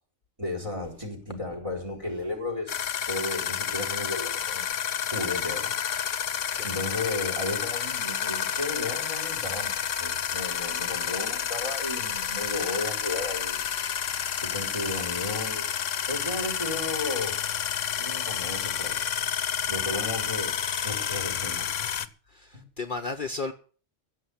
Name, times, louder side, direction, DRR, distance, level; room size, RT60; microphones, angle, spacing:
voice 1, 0.4-2.8 3.1-4.7 5.1-5.7 6.6-13.7 14.4-15.7 16.1-17.4 17.9-19.0 19.7-20.5 20.8-21.9 22.5-22.6, left 2 dB, 25° right, 4.4 m, -34 dB
sound 1, 2.7-22.1, left 9 dB, 85° left, 1.2 m, -30 dB
voice 2, 6.4-6.8 10.9-11.1 19.9-20.4 22.3-23.5, left 3 dB, 45° left, 1.1 m, -36 dB
15.5 x 7.2 x 8.2 m
omnidirectional pair, 1.3 m